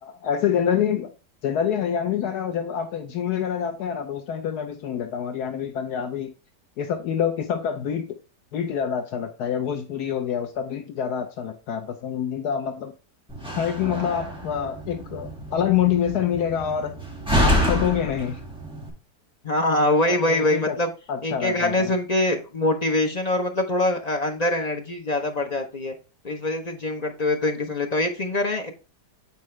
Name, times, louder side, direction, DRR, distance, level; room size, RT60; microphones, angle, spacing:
voice 1, 0.0-1.1 1.4-6.3 6.8-8.1 8.5-12.9 13.5-16.9 17.4-18.4 20.1-20.7 21.1-21.9, left 8 dB, 70° left, 6 dB, 1.2 m, -26 dB
Slam, 13.3-18.9, equal, 5° right, 1.8 m, -27 dB
voice 2, 19.4-20.9 21.2-25.9 26.2-28.8, left 1 dB, 45° left, 3 dB, 0.5 m, -24 dB
8.3 x 4.7 x 3.1 m, 0.33 s
omnidirectional pair, 1.8 m